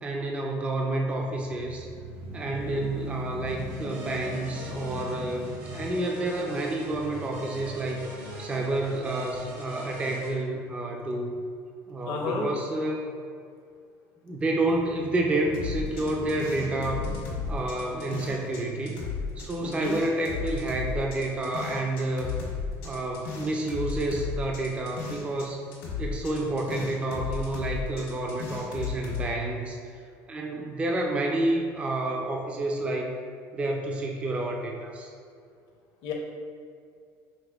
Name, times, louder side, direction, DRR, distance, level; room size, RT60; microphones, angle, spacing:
voice 1, 0.0-1.9 2.3-11.4 11.9-13.0 14.2-17.0 17.5-19.0 19.4-22.3 22.8-25.6 26.0-29.8 30.3-33.2 33.5-35.1, right 2 dB, 15° right, 1 dB, 0.3 m, -29 dB
sound 1, 1.3-9.4 9.9-10.0 14.5-19.0, equal, 65° right, 0.8 m, -42 dB
voice 2, 2.5-2.9 12.1-12.5 19.6-20.0 36.0-36.1, left 4 dB, 65° left, 0 dB, 0.6 m, -32 dB
sound 2, 3.5-10.3, equal, 85° right, 1.2 m, -42 dB
sound 3, 15.5-18.6 18.9-25.5 25.7-29.2, left 5 dB, 90° left, 1.2 m, -34 dB
5.3 x 3.1 x 2.3 m, 2.2 s
cardioid pair, 145°, 7 cm